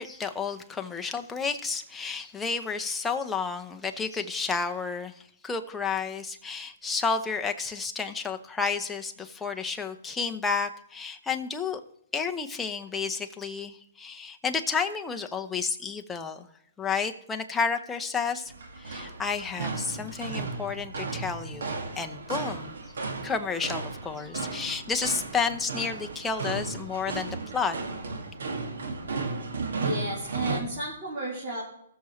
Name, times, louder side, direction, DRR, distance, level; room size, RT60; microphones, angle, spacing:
voice 1, 0.0-11.8 12.1-16.5 16.8-22.8 23.2-27.8, left 5 dB, 10° left, 5 dB, 0.8 m, -31 dB
sound 1, 18.4-30.6, right 3 dB, 80° right, 2.1 m, -35 dB
voice 2, 29.8-31.6, right 1 dB, 35° right, -7 dB, 3.9 m, -33 dB
19.5 x 7.0 x 3.2 m, 0.73 s
hypercardioid pair, 155°, 0 cm